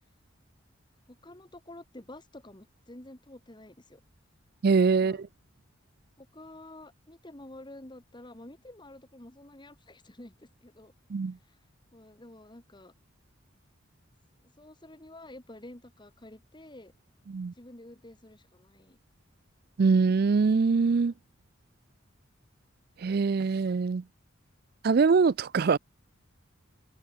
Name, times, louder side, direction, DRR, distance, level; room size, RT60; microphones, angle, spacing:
voice 1, 1.1-4.0 5.0-5.2 6.2-10.9 11.4-11.6 11.9-12.9 14.4-16.9 17.5-19.0, left 1 dB, 20° left, 1.6 m, -49 dB
voice 2, 4.6-5.3 11.1-11.4 17.3-17.5 19.8-21.1 23.0-24.0 24.8-25.8, right 4 dB, 50° right, 0.4 m, -23 dB
head